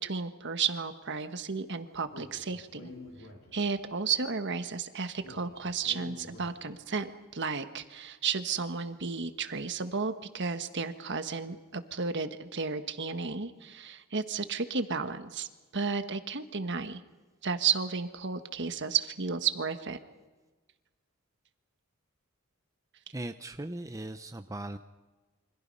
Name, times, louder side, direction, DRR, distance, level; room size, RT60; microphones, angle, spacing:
voice 1, 0.0-2.9 3.5-15.5 15.7-17.0 17.4-20.0, right 5 dB, 55° right, 9 dB, 1.5 m, -33 dB
Speech, 2.1-3.9 5.2-7.0, left 2 dB, 80° left, 5.1 m, -49 dB
voice 2, 23.1-24.8, right 1 dB, 15° right, 8 dB, 0.7 m, -38 dB
28.5 x 25.0 x 5.5 m, 1.2 s
head